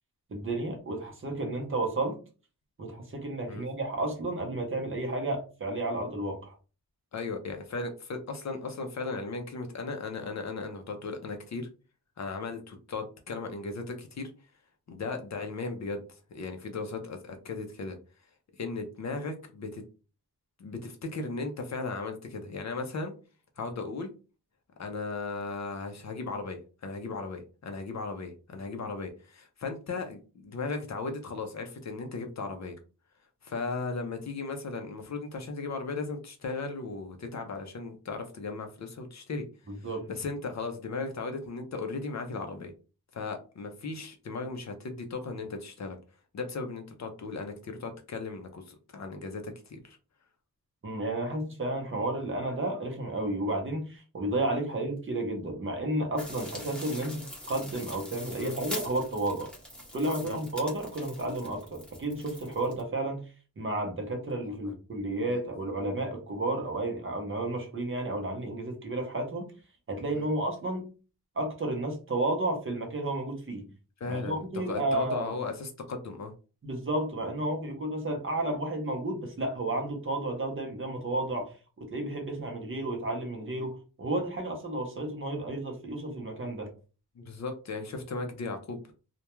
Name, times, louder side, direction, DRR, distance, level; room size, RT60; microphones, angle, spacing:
voice 1, 0.3-2.2 2.8-6.6 39.7-40.1 50.8-59.5 59.9-63.2 63.6-69.5 69.9-70.8 71.4-73.7 74.1-75.3 76.6-86.7, right 2 dB, 35° right, 2 dB, 0.6 m, -32 dB
voice 2, 7.1-11.7 12.2-14.3 14.9-18.0 18.6-19.8 20.6-23.1 23.6-24.1 24.8-32.8 33.4-39.5 39.8-42.7 43.1-46.0 46.3-50.0 58.3-58.5 60.2-60.4 64.4-64.7 65.3-65.4 70.1-70.3 74.0-76.3 87.2-88.8, left 3 dB, 45° left, 5 dB, 0.4 m, -36 dB
sound 1, 56.2-62.8, equal, 5° left, 0.7 m, -43 dB
2.2 x 2.1 x 2.9 m, 0.35 s
wide cardioid pair, 170°, 39 cm